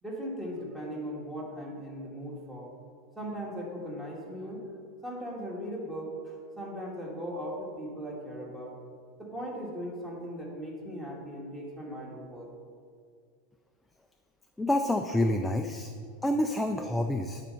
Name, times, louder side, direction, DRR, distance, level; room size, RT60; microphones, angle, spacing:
voice 1, 0.0-2.7 3.2-4.6 5.0-8.7 9.2-12.5, equal, 10° right, -2 dB, 1.9 m, -38 dB
voice 2, 14.6-15.9 16.2-17.4, left 1 dB, 5° left, 4 dB, 0.3 m, -28 dB
10.0 x 4.2 x 5.4 m, 2.1 s
supercardioid pair, 135°, 0 cm